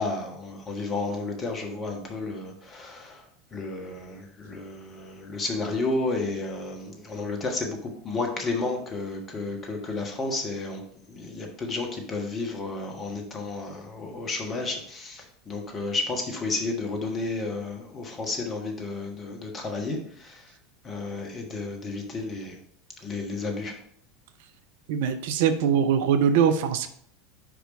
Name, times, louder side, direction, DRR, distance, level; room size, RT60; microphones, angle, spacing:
voice 1, 0.0-3.2 3.5-20.5 20.8-22.6 23.0-23.7, left 3 dB, 25° left, 2 dB, 1.4 m, -32 dB
voice 2, 24.9-26.9, right 7 dB, 55° right, 9 dB, 0.5 m, -22 dB
5.0 x 4.9 x 5.1 m, 0.65 s
figure-of-eight pair, 75°, 0 cm